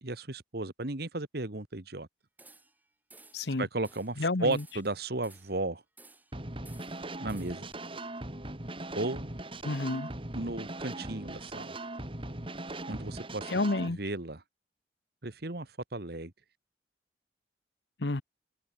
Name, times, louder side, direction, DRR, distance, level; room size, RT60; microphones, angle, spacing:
voice 1, 0.0-2.1 3.6-5.8 7.2-7.7 8.9-9.3 10.3-11.8 12.9-13.5 14.0-14.4 15.2-16.3, right 2 dB, 60° right, 1.7 m, -34 dB
sound 1, 2.4-2.8 3.1-3.5 3.8-4.2 4.5-5.6 6.0-6.4 6.6-7.7, right 3 dB, 10° right, 5.8 m, -57 dB
voice 2, 3.3-3.7 4.2-4.6 9.6-10.1 13.5-14.0 18.0-18.2, left 2 dB, 70° left, 1.1 m, -30 dB
sound 2, 6.3-13.9, right 2 dB, 30° right, 2.3 m, -40 dB
head